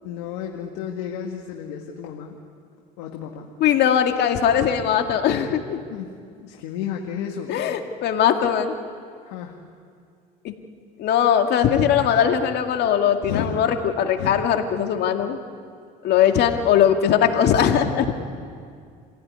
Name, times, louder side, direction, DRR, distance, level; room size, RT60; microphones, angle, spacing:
voice 1, 0.0-2.4 3.0-3.5 5.9-7.6 9.2-9.6 13.3-13.6 14.2-14.4 17.1-17.4, left 8 dB, 85° left, 2 dB, 1.9 m, -32 dB
voice 2, 3.6-5.8 7.5-8.7 10.4-10.5 11.0-13.7 14.0-15.4 16.0-18.1, left 9 dB, 65° left, 5 dB, 2.2 m, -20 dB
26.0 x 16.0 x 9.7 m, 2.2 s
supercardioid pair, 80°, 19 cm